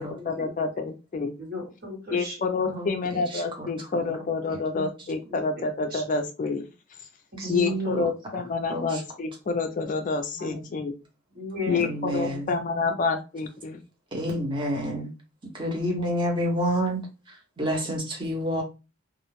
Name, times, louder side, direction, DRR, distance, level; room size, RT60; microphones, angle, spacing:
voice 1, 0.0-1.3 2.1-6.7 7.5-10.9 11.7-13.8, left 4 dB, 40° left, 7 dB, 0.4 m, -28 dB
voice 2, 1.4-2.4 4.7-4.9 5.3-5.7 5.9-6.0 7.3-7.5 7.8-8.0 10.3-10.6 11.3-11.9 12.2-12.4 12.8-12.9, left 2 dB, 50° right, -2 dB, 1.2 m, -36 dB
voice 3, 7.4-8.1 8.7-8.9 11.8-12.5 14.1-15.1 15.6-17.0 17.6-18.6, equal, 25° right, 0 dB, 0.8 m, -28 dB
2.4 x 2.0 x 3.1 m, 0.29 s
head